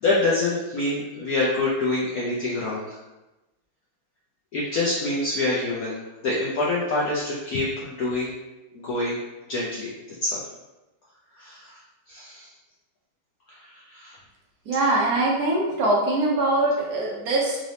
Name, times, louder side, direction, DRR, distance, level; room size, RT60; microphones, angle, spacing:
voice 1, 0.0-3.0 4.5-8.3 8.7-9.2 9.5-9.9 10.2-10.4 11.4-11.8 12.1-12.5 13.5-14.2, left 2 dB, 70° left, -6 dB, 0.8 m, -26 dB
voice 2, 14.7-17.6, right 2 dB, 65° right, -2 dB, 1.0 m, -22 dB
3.9 x 2.7 x 3.2 m, 1.0 s
omnidirectional pair, 2.3 m